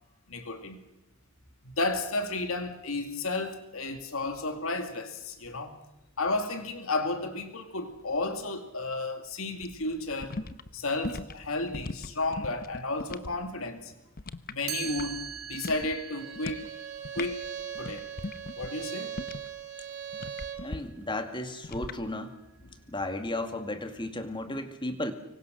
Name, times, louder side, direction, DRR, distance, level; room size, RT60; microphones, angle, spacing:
voice 1, 0.3-0.8 1.6-5.8 6.2-10.4 10.7-13.9 14.5-16.6 17.1-17.4 17.8-18.1 18.6-19.1, left 2 dB, 70° left, 2.6 m, -32 dB
sound 1, 9.6-13.4 13.6-15.3 15.5-16.0 16.4-16.7 17.0-19.6 20.1-20.8 21.6-22.0, left 3 dB, 45° left, 0.9 m, -39 dB
Chime, 14.7-20.5, right 9 dB, 85° right, 1.9 m, -43 dB
Bowed string instrument, 16.2-20.7, right 9 dB, 60° right, 3.7 m, -40 dB
voice 2, 20.6-22.3 22.9-25.1, left 1 dB, 25° left, 2.2 m, -34 dB
25.5 x 23.5 x 6.5 m
head